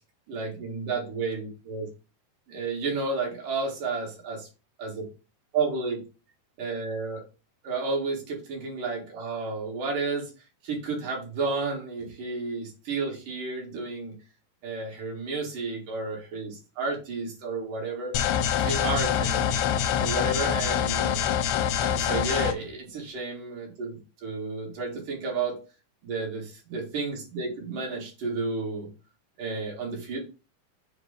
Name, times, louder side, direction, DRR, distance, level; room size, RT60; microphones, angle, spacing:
voice 1, 0.3-1.9 2.5-4.5 4.8-5.0 5.5-6.0 6.6-7.2 7.6-10.3 10.6-14.1 14.6-18.1 18.5-19.5 19.9-21.3 21.8-25.6 26.0-28.9 29.4-30.2, right 3 dB, 60° right, -1 dB, 2.9 m, -32 dB
sound 1, 18.1-22.5, left 9 dB, 85° left, 2.7 m, -25 dB
7.4 x 2.6 x 5.0 m, 0.32 s
omnidirectional pair, 4.8 m